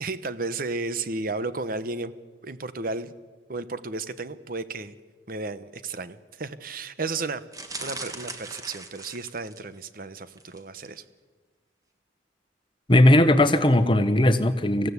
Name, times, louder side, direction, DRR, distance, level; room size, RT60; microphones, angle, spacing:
voice 1, 0.0-2.1 2.4-3.1 3.5-5.0 5.3-7.4 7.8-11.0, right 3 dB, 50° right, 14 dB, 0.9 m, -33 dB
sound 1, 7.5-9.8 10.3-10.6 10.9-11.0, right 3 dB, 20° right, 1.7 m, -39 dB
voice 2, 12.9-14.9, left 1 dB, 25° left, 10 dB, 1.1 m, -18 dB
25.0 x 15.5 x 8.2 m, 1.4 s
head